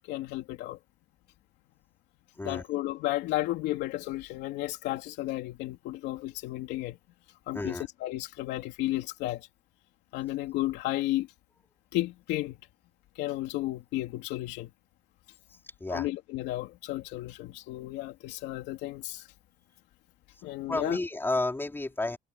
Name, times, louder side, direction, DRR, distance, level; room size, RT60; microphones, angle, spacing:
voice 1, 0.1-0.8 2.4-7.0 7.5-9.5 10.1-11.3 11.9-12.6 13.2-14.7 15.9-19.3 20.4-21.0, left 16 dB, 90° left, 3.2 m, -33 dB
voice 2, 7.5-7.8 15.8-16.1 20.7-22.2, left 2 dB, 15° left, 4.2 m, -31 dB
cardioid pair, 110°, 17 cm